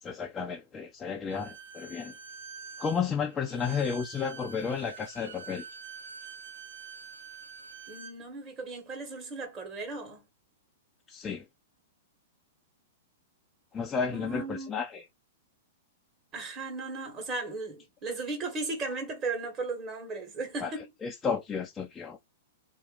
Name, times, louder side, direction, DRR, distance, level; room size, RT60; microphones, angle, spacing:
voice 1, 0.0-2.1 2.8-5.6 11.1-11.4 13.7-15.0 20.6-20.7 21.0-22.2, left 6 dB, 20° left, 0.5 m, -32 dB
Bowed string instrument, 1.3-8.2, right 6 dB, 85° right, 0.7 m, -46 dB
voice 2, 7.9-10.2 14.1-14.7 16.3-20.8, right 3 dB, 30° right, 1.5 m, -36 dB
2.8 x 2.2 x 3.8 m
hypercardioid pair, 115°, 0 cm